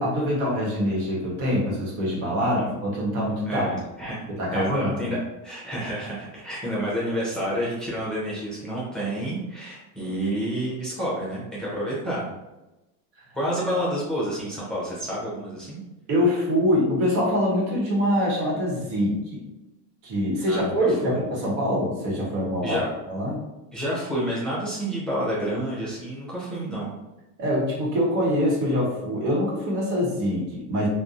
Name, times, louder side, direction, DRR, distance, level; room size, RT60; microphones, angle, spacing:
voice 1, 0.0-3.8 4.3-5.1 16.1-19.4 20.0-23.4 27.4-30.9, equal, 65° right, -3 dB, 1.2 m, -24 dB
voice 2, 3.4-5.2 5.4-12.3 13.3-15.8 20.5-21.2 22.6-22.9 23.7-26.9, equal, ahead, -8 dB, 0.6 m, -29 dB
2.6 x 2.3 x 2.5 m, 1.0 s
supercardioid pair, 110°, 48 cm